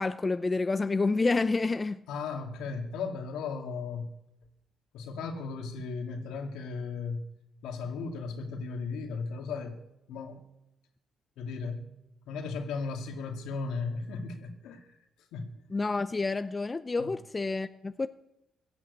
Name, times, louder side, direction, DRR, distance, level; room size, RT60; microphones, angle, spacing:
voice 1, 0.0-2.0 15.7-18.1, left 3 dB, 25° left, 0.6 m, -29 dB
voice 2, 2.1-4.1 4.9-7.3 7.6-9.8 10.1-10.5 11.4-11.9 12.3-15.0 15.3-15.5 17.0-17.2, left 4 dB, 90° left, 2.2 m, -36 dB
16.5 x 10.5 x 8.3 m
cardioid pair, 90°, 0 cm